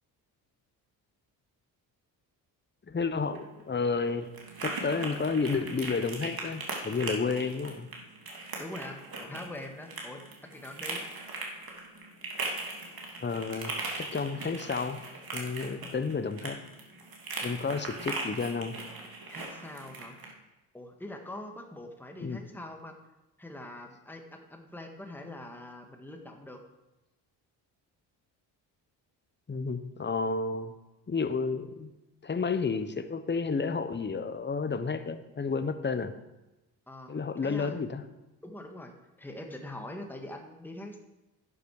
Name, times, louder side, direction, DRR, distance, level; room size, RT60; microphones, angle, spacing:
voice 1, 2.9-4.3 4.6-7.9 13.2-15.0 15.3-16.6 17.4-18.8 22.2-22.4 29.5-30.7 31.1-31.9 32.2-36.1 37.1-38.0, left 4 dB, 25° left, 10 dB, 1.0 m, -31 dB
sound 1, 3.1-20.3, right 3 dB, 45° right, 2.5 m, -39 dB
voice 2, 8.6-11.0 19.3-20.2 20.7-23.0 23.4-26.6 36.9-37.1 37.4-37.8 38.4-41.0, left 1 dB, 5° left, 3 dB, 1.6 m, -43 dB
11.0 x 7.3 x 4.9 m, 1.0 s
supercardioid pair, 55°, 48 cm